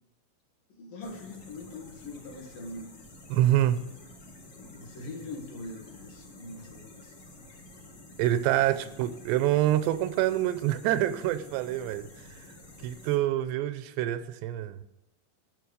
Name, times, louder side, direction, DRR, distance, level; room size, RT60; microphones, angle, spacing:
voice 1, 0.8-2.9 4.6-7.2 8.7-8.8, left 2 dB, 55° left, 3.2 m, -42 dB
sound 1, 1.0-13.2, left 1 dB, 85° left, 0.9 m, -50 dB
voice 2, 3.3-3.8 8.2-12.1 12.4-12.5 12.8-14.8, right 13 dB, 85° right, 2.7 m, -26 dB
11.5 x 8.5 x 5.1 m
omnidirectional pair, 5.1 m